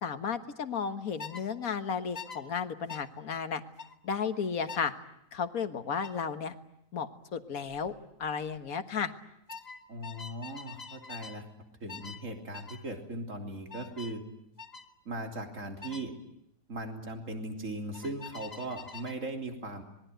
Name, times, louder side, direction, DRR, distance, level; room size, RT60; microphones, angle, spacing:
voice 1, 0.0-3.6 4.0-4.9 5.3-6.5 6.9-7.9 8.2-9.1, left 6 dB, 55° left, 9 dB, 1.8 m, -33 dB
sound 1, 1.2-1.5 2.1-2.4 2.9-3.1 3.8-4.0 4.7-4.9 6.0-6.2 7.7-7.9 8.2-8.6 9.5-11.4 11.9-12.2 12.5-12.8 13.7-14.2 14.6-14.9 15.8-16.1 17.9-19.2, left 5 dB, 25° left, 1.3 m, -45 dB
voice 2, 9.9-11.4 11.8-14.2 15.1-16.1 16.7-19.8, right 1 dB, 45° right, 4 dB, 3.6 m, -38 dB
26.0 x 21.5 x 9.2 m, 0.78 s
omnidirectional pair, 1.8 m